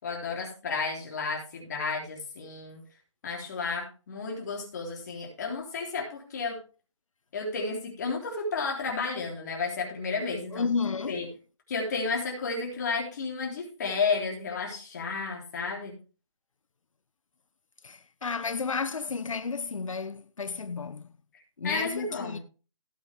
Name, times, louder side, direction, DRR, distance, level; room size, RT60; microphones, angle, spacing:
voice 1, 0.0-2.8 3.2-6.6 7.3-10.7 11.1-11.3 11.7-15.9 21.6-22.4, left 4 dB, 35° left, 3.6 m, -32 dB
voice 2, 10.5-11.3 17.8-21.1 21.6-22.4, left 5 dB, 85° left, 0.8 m, -32 dB
17.5 x 6.6 x 3.5 m
hypercardioid pair, 165°, 16 cm